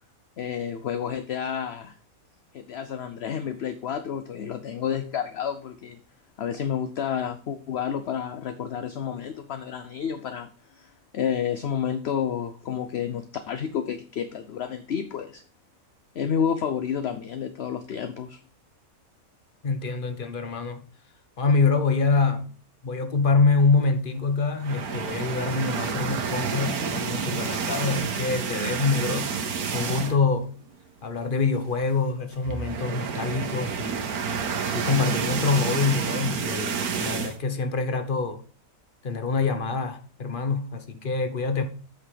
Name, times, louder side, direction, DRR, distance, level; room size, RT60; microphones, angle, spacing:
voice 1, 0.4-2.0 2.5-6.0 6.4-15.4 16.1-18.4, left 8 dB, 55° left, 0.8 m, -30 dB
voice 2, 19.6-20.8 21.4-22.5 22.8-30.5 31.0-34.1 34.7-38.4 39.0-41.6, left 4 dB, 40° left, 1.1 m, -25 dB
sound 1, 24.6-30.4 30.7-30.9 31.2-31.3 32.3-37.4, right 6 dB, 85° right, 1.6 m, -29 dB
8.3 x 5.8 x 4.9 m
omnidirectional pair, 1.5 m